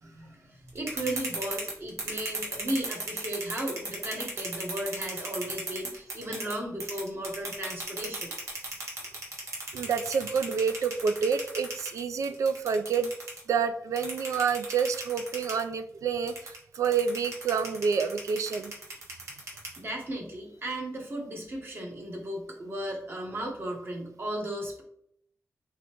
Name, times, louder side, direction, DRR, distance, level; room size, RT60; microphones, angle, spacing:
voice 1, 0.0-8.3 19.8-24.8, right 1 dB, 45° right, 1 dB, 1.1 m, -35 dB
sound 1, 0.7-6.5 6.8-13.4 14.0-15.6 16.3-20.0, right 2 dB, 60° right, 1.3 m, -35 dB
voice 2, 9.7-13.1 13.5-18.7 20.7-20.8, right 6 dB, 85° right, 9 dB, 0.4 m, -28 dB
3.8 x 3.3 x 2.9 m, 0.68 s
wide cardioid pair, 125°, 5 cm